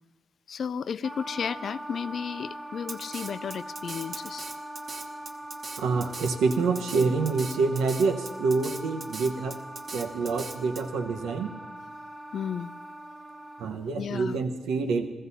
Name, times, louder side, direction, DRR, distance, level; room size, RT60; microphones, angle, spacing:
voice 1, 0.5-4.5 12.3-12.8 13.9-14.4, left 7 dB, 60° left, 17 dB, 0.3 m, -33 dB
Wind instrument woodwind instrument, 1.0-13.9, right 1 dB, 15° right, 1.2 m, -42 dB
Drum kit, 2.9-10.8, right 4 dB, 50° right, 1.0 m, -40 dB
voice 2, 5.8-9.6 9.9-11.5 13.6-15.1, right 4 dB, 90° right, 6 dB, 0.9 m, -27 dB
15.5 x 14.0 x 4.1 m, 1.2 s
cardioid pair, 70°, 0 cm